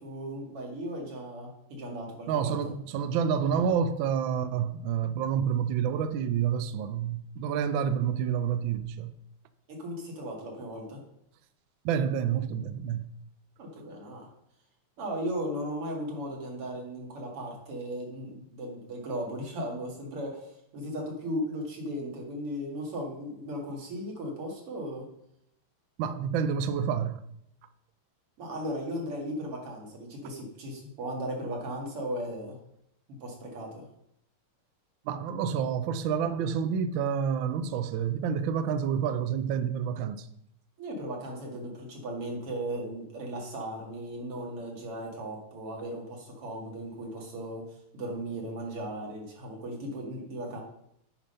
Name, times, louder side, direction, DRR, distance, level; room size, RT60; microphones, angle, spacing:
voice 1, 0.0-2.6 9.7-11.0 13.6-14.3 15.0-25.0 28.4-32.6 33.1-33.9 40.8-47.6 47.9-50.6, equal, 90° right, 3.0 m, -36 dB
voice 2, 2.3-9.1 11.8-13.1 26.0-27.2 35.1-40.3, right 7 dB, 75° right, 1.2 m, -28 dB
9.0 x 5.2 x 5.5 m
omnidirectional pair, 2.4 m